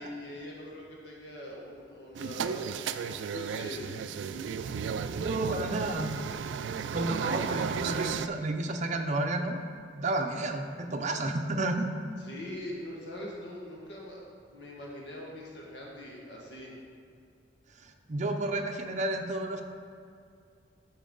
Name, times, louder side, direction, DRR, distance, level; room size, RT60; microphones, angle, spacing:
voice 1, 0.0-2.6 3.0-4.0 7.1-7.3 12.2-14.2 14.5-16.7, left 1 dB, 70° left, -3 dB, 1.6 m, -42 dB
sound 1, 2.1-8.3, right 6 dB, 80° right, 0.3 m, -34 dB
voice 2, 5.2-6.1 6.9-9.6 9.9-11.9 17.8-19.6, right 2 dB, 40° right, 3 dB, 0.6 m, -31 dB
12.0 x 4.6 x 3.9 m, 2.3 s
head